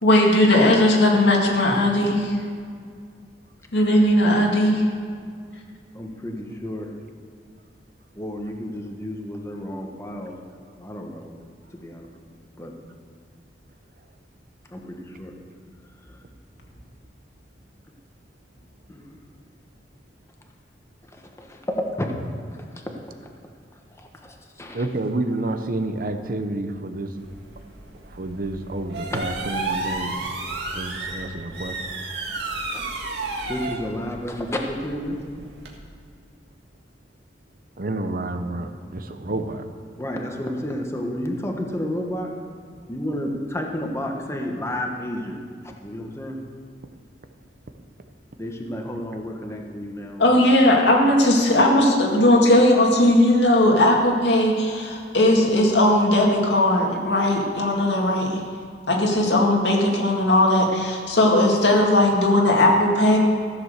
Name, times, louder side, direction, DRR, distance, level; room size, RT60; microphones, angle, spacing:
voice 1, 0.0-2.4 3.7-4.8 50.2-58.4 58.9-63.2, left 1 dB, 85° left, 0 dB, 2.1 m, -18 dB
voice 2, 5.9-6.9 8.1-10.3 10.8-11.3 11.7-12.1 12.6-12.7 14.7-15.3 16.0-16.2 18.9-19.2 21.1-22.1 22.7-22.8 24.0-24.9 32.7-32.8 33.5-35.2 40.0-42.3 42.9-45.4 45.8-46.4 48.4-50.2 59.2-59.3, left 1 dB, 15° left, 1 dB, 1.3 m, -31 dB
voice 3, 24.7-27.2 28.0-30.3 30.7-31.9 37.8-39.6, right 2 dB, 55° right, 8 dB, 0.9 m, -29 dB
sound 1, 27.2-35.8, right 3 dB, 70° right, 1.8 m, -33 dB
14.5 x 7.4 x 6.6 m, 2.2 s
head